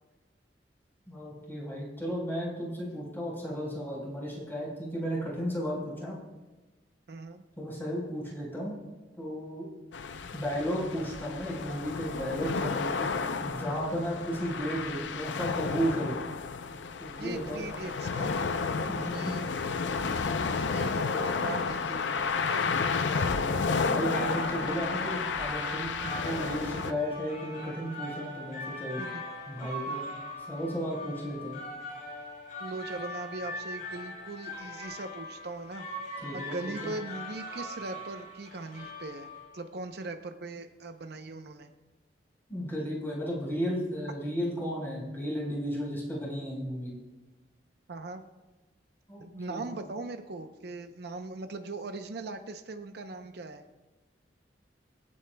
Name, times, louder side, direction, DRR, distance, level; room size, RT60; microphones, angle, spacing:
voice 1, 1.1-6.2 7.6-8.8 9.2-9.7 10.3-13.1 13.4-16.2 17.0-17.7 18.7-19.4 23.2-29.0 29.5-30.0 30.5-31.6 36.2-36.9 42.5-46.9 49.1-49.6, equal, 10° left, -5 dB, 4.1 m, -34 dB
voice 2, 7.1-7.4 17.2-18.4 18.9-19.6 20.7-22.7 29.0-29.3 29.6-29.7 32.6-41.7 47.9-48.2 49.2-53.7, right 3 dB, 65° right, 7 dB, 0.7 m, -40 dB
sound 1, 9.9-26.9, left 5 dB, 85° left, 0.6 m, -31 dB
sound 2, 23.9-39.7, left 1 dB, 50° left, 4.4 m, -41 dB
Wind instrument woodwind instrument, 24.2-29.0, right 6 dB, 35° right, 2.5 m, -48 dB
25.0 x 8.6 x 2.2 m, 1.2 s
head